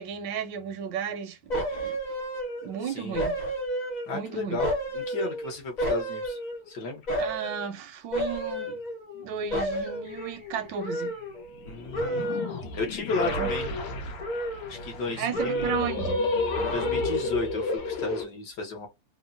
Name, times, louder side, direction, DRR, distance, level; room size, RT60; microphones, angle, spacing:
voice 1, 0.0-2.0 2.6-3.4 4.1-4.6 7.2-8.8 9.1-11.2 13.4-13.5 15.2-16.2, right 7 dB, 80° right, 1.2 m, -34 dB
sound 1, 1.5-2.8 3.1-4.2 4.6-6.7 7.1-7.6 8.1-9.2 9.5-11.7 11.9-12.6 13.1-13.9 14.2-15.1 15.3-16.0 16.5-17.3 17.7-17.8, equal, 45° left, 0.6 m, -31 dB
voice 2, 4.1-6.4 6.7-7.0 11.6-12.4 12.7-13.7 14.7-15.8 16.7-18.9, left 3 dB, 70° left, 1.6 m, -33 dB
sound 2, 10.1-10.4 11.6-18.2, left 3 dB, 90° left, 1.5 m, -32 dB
3.7 x 2.1 x 2.5 m
omnidirectional pair, 2.0 m